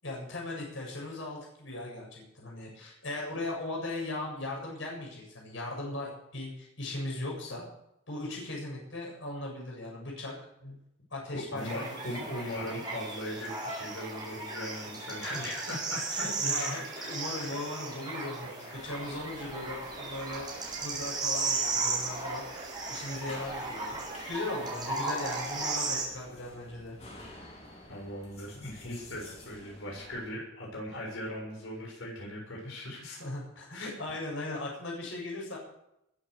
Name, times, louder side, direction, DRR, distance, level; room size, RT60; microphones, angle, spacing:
voice 1, 0.0-7.6 8.1-10.3 11.1-12.0 16.1-24.0 24.3-27.0 33.2-35.6, left 2 dB, 70° left, -2 dB, 7.3 m, -38 dB
voice 2, 11.3-16.3 16.5-17.5 18.6-18.9 27.9-33.2 33.7-33.9, left 1 dB, 85° left, -2 dB, 6.9 m, -39 dB
sound 1, 11.6-26.1, right 3 dB, 20° right, 5.9 m, -35 dB
sound 2, 18.7-30.2, left 1 dB, 30° left, 4.8 m, -51 dB
21.0 x 9.3 x 6.8 m, 0.80 s
head